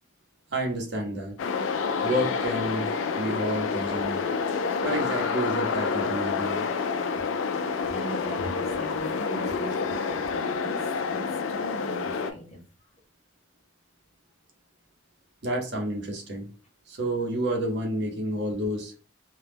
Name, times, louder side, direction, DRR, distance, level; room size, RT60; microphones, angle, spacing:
voice 1, 0.5-1.3 2.0-2.9 3.2-4.3 4.8-6.7 15.4-16.5 16.9-18.9, right 1 dB, 60° right, 1 dB, 0.7 m, -29 dB
sound 1, 1.4-12.3, left 5 dB, 85° left, 0.3 m, -28 dB
voice 2, 7.9-11.2 11.5-12.6, right 1 dB, 35° left, 0 dB, 0.7 m, -40 dB
2.2 x 2.0 x 3.3 m, 0.38 s
head